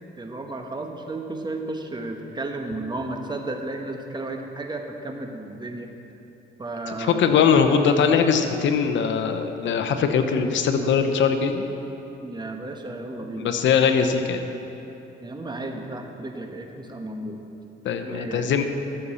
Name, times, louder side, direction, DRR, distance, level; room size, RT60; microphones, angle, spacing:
voice 1, 0.2-5.9 6.6-7.3 12.2-13.5 15.2-17.4 18.0-18.6, right 2 dB, 20° right, 3 dB, 1.0 m, -33 dB
voice 2, 7.0-11.6 13.4-14.4 17.8-18.6, left 6 dB, 70° left, 7 dB, 0.8 m, -21 dB
14.0 x 7.0 x 4.2 m, 2.9 s
cardioid pair, 90°, 20 cm